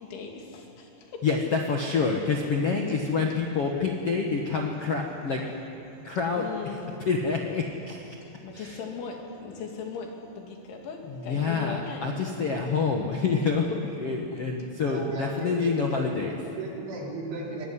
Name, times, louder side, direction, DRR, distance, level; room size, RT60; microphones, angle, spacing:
voice 1, 0.0-1.3 2.9-3.0 6.0-6.1 6.4-7.1 8.2-12.4 12.9-13.3 14.3-14.4, left 5 dB, 90° left, 1 dB, 5.1 m, -39 dB
voice 2, 1.2-5.4 6.0-6.4 7.0-8.0 8.5-8.8 11.1-16.4, left 4 dB, 70° left, 1 dB, 1.4 m, -27 dB
voice 3, 14.8-16.0 16.4-17.7, right 3 dB, 85° right, -3 dB, 6.8 m, -35 dB
25.5 x 19.0 x 9.8 m, 2.8 s
omnidirectional pair, 5.3 m